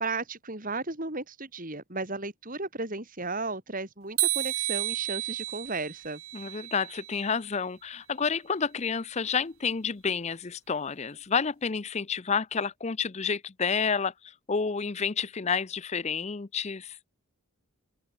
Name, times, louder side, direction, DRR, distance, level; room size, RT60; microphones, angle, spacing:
voice 1, 0.0-6.2, right 3 dB, 40° right, 3.7 m, -34 dB
sound 1, 4.2-7.3, right 17 dB, 70° right, 1.4 m, -32 dB
voice 2, 6.3-17.0, left 5 dB, 30° left, 0.5 m, -30 dB
open air
head